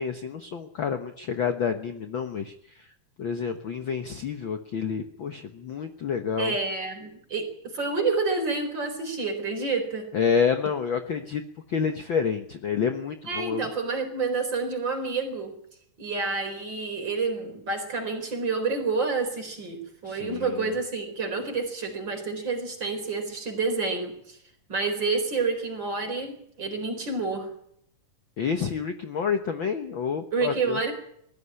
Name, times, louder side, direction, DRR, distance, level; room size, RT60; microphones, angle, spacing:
voice 1, 0.0-2.9 3.2-6.6 10.1-11.4 11.7-13.7 20.0-20.7 28.4-30.8, left 6 dB, 70° left, 7 dB, 1.1 m, -29 dB
voice 2, 6.4-10.1 13.3-15.6 16.0-24.4 24.7-27.5 30.3-30.9, right 4 dB, 30° right, 5 dB, 4.7 m, -29 dB
21.0 x 15.0 x 9.8 m, 0.71 s
omnidirectional pair, 4.0 m